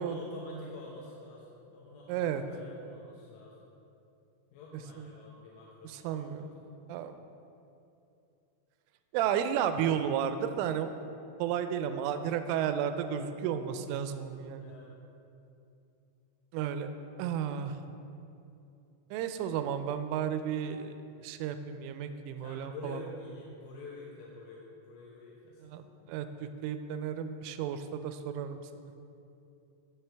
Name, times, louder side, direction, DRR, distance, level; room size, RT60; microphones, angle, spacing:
voice 1, 0.0-3.7 4.5-6.7 14.6-14.9 20.2-20.3 22.4-25.8 26.0-26.2, left 2 dB, 80° left, -5 dB, 3.4 m, -48 dB
voice 2, 2.1-2.4 5.8-6.5 6.9-7.2 9.1-10.9 11.4-14.7 16.5-16.9 17.2-17.8 19.1-21.0 21.2-23.0 25.6-28.6, right 9 dB, 85° right, 9 dB, 3.0 m, -33 dB
16.0 x 6.7 x 3.4 m, 2.7 s
omnidirectional pair, 5.7 m